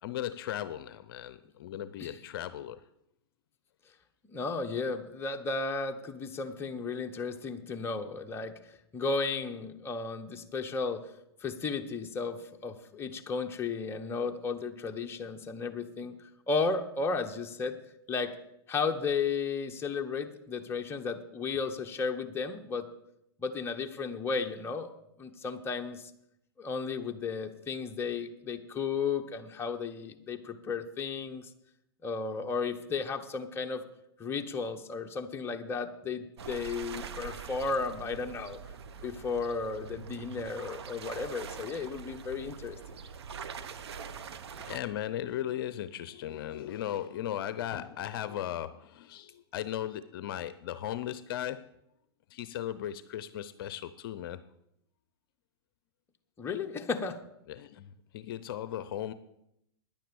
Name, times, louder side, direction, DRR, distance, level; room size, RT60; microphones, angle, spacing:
voice 1, 0.0-2.8 44.5-51.7 52.3-54.4 57.5-59.1, left 11 dB, 60° left, 14 dB, 0.6 m, -37 dB
voice 2, 4.3-8.6 8.9-11.1 11.4-16.2 16.5-17.8 18.1-18.3 18.7-22.9 23.4-24.9 25.2-26.1 26.6-31.5 32.0-33.8 34.2-38.6 39.0-42.8 56.4-57.2, left 4 dB, 15° left, 3 dB, 1.1 m, -34 dB
sound 1, 36.4-44.8, right 7 dB, 80° right, 0.9 m, -44 dB
10.5 x 9.2 x 7.0 m, 0.79 s
hypercardioid pair, 125°, 14 cm